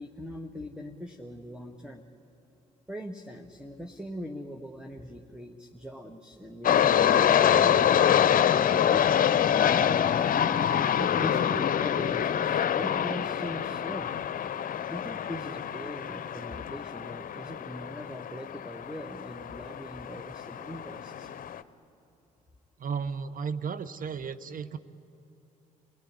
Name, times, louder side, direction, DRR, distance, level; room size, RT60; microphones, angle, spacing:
voice 1, 0.0-2.0 2.9-8.5 8.9-10.3 11.0-14.1 14.9-21.3, equal, 5° right, 5 dB, 1.7 m, -41 dB
sound 1, 6.6-21.6, left 9 dB, 50° left, 0.8 m, -26 dB
voice 2, 22.8-24.8, right 6 dB, 50° right, 12 dB, 1.2 m, -34 dB
29.0 x 17.5 x 9.8 m, 2.9 s
hypercardioid pair, 60°, 18 cm